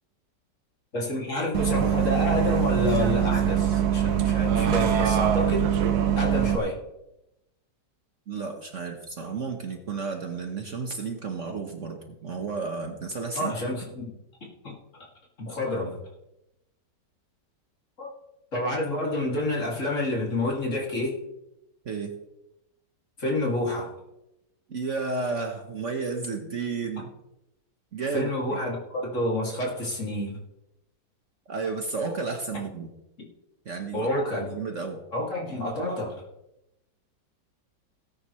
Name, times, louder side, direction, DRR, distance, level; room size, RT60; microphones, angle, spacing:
voice 1, 0.9-5.7 6.2-6.8 13.3-14.1 14.6-14.7 15.4-16.0 18.0-18.1 18.5-21.1 23.2-23.9 28.1-30.4 33.9-34.6 35.1-36.2, left 1 dB, 45° left, -2 dB, 2.9 m, -28 dB
Bus, 1.5-6.6, right 9 dB, 65° right, 1.4 m, -23 dB
voice 2, 8.3-13.5 21.8-22.2 24.7-27.1 27.9-28.6 31.5-32.9 33.6-34.1 34.4-35.0, right 4 dB, 50° right, 4 dB, 1.4 m, -32 dB
18.5 x 9.6 x 3.2 m, 0.90 s
omnidirectional pair, 1.9 m